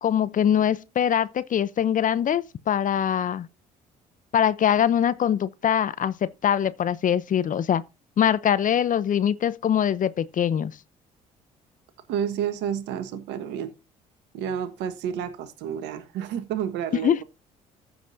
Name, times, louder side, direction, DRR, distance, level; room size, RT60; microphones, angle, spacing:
voice 1, 0.0-3.5 4.3-7.8 8.2-10.7 17.0-17.2, left 9 dB, 45° left, 0.7 m, -23 dB
voice 2, 12.1-13.7 14.3-17.2, right 9 dB, 70° right, 1.3 m, -30 dB
14.5 x 6.0 x 2.7 m
hypercardioid pair, 55°, 19 cm